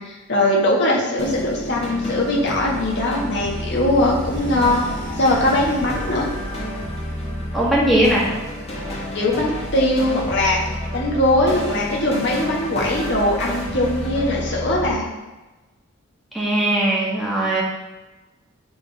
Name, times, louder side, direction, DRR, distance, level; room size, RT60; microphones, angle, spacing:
voice 1, 0.0-4.8 5.2-6.3 9.1-10.6 10.9-15.1, left 1 dB, 60° left, -3 dB, 1.6 m, -20 dB
sound 1, 1.2-14.9, equal, 30° left, 1.5 m, -30 dB
sound 2, 3.9-6.9 7.5-8.4, equal, 35° right, 1.9 m, -35 dB
voice 2, 7.5-8.3 16.3-17.6, right 1 dB, ahead, -6 dB, 1.6 m, -19 dB
8.7 x 3.8 x 3.4 m, 1.1 s
head